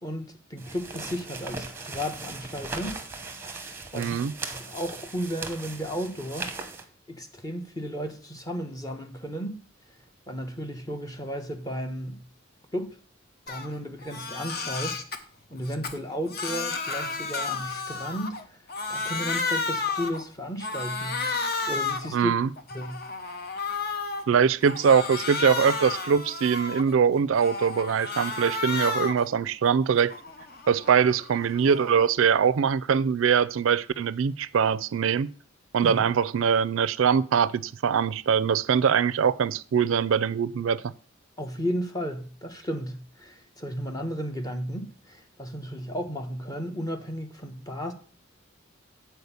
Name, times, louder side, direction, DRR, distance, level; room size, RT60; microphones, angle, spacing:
voice 1, 0.0-3.0 3.5-6.5 7.1-9.6 10.3-12.2 12.7-13.0 13.5-15.0 15.5-18.6 18.9-22.3 22.7-23.0 35.8-36.0 41.4-47.9, equal, 20° left, 1.0 m, -34 dB
sound 1, 0.6-6.8, right 3 dB, 10° right, 0.9 m, -38 dB
voice 2, 3.9-4.3 22.1-22.5 24.3-30.1 30.7-35.3 35.7-40.8, right 7 dB, 75° right, 0.4 m, -23 dB
Crying sobbing, 13.5-13.7 14.0-15.2 15.6-18.4 18.7-20.2 20.6-22.1 22.6-24.2 24.6-26.9 27.3-29.3 29.7-32.0, left 4 dB, 50° left, 0.9 m, -32 dB
8.0 x 4.5 x 6.9 m
head